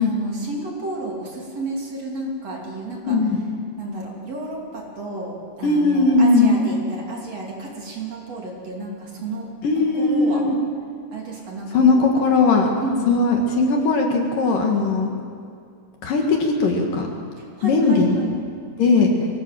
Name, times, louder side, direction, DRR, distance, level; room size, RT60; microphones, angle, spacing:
voice 1, 0.0-3.2 3.8-9.5 9.7-10.5 11.1-12.1 12.8-13.2 17.4-18.4, right 2 dB, 40° right, -2 dB, 3.8 m, -31 dB
voice 2, 3.1-3.4 5.6-6.6 9.6-10.6 11.7-12.8 13.1-15.2 16.0-17.1 17.6-18.2 18.8-19.1, left 3 dB, 60° left, 2 dB, 3.1 m, -18 dB
23.5 x 18.0 x 7.6 m, 2.3 s
omnidirectional pair, 4.7 m